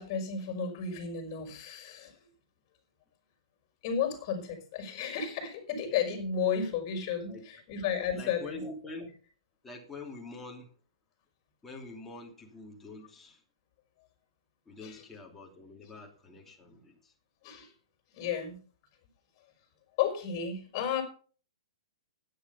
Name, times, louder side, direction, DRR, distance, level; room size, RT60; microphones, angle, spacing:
voice 1, 0.0-2.1 3.8-8.6 14.8-15.0 17.4-17.7 18.1-18.6 20.0-21.0, left 7 dB, 35° left, 5.1 m, -33 dB
voice 2, 8.1-9.2 9.6-10.7 11.6-13.4 14.7-17.1, left 2 dB, 10° left, 2.7 m, -45 dB
12.5 x 9.6 x 5.6 m
hypercardioid pair, 155°, 3 cm